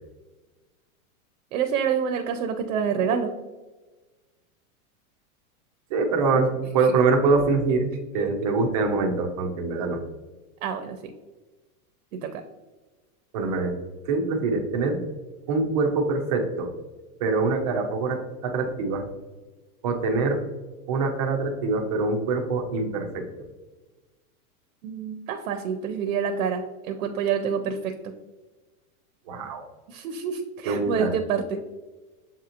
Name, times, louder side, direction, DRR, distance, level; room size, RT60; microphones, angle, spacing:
voice 1, 1.5-3.3 6.3-6.5 8.2-8.3 10.6-11.1 12.1-12.4 24.8-27.9 29.9-31.6, right 7 dB, 70° right, 6 dB, 0.6 m, -27 dB
voice 2, 5.9-10.0 13.3-13.7 14.0-15.0 15.5-16.7 17.2-19.1 19.8-20.4 20.9-23.2 29.3-29.6 30.6-31.1, right 3 dB, 25° right, 3 dB, 0.4 m, -24 dB
7.1 x 2.9 x 2.5 m, 1.2 s
supercardioid pair, 160°, 44 cm